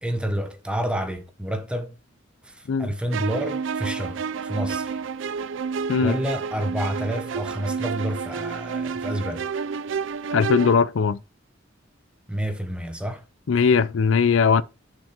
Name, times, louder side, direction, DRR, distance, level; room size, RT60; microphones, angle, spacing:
voice 1, 0.0-2.0 2.4-5.0 6.0-9.5 12.3-13.2, equal, 5° right, 1.1 m, -29 dB
sound 1, 3.1-10.8, right 5 dB, 65° right, 0.4 m, -30 dB
voice 2, 10.3-11.2 13.5-14.6, left 5 dB, 70° left, 0.4 m, -19 dB
7.1 x 5.2 x 4.9 m
head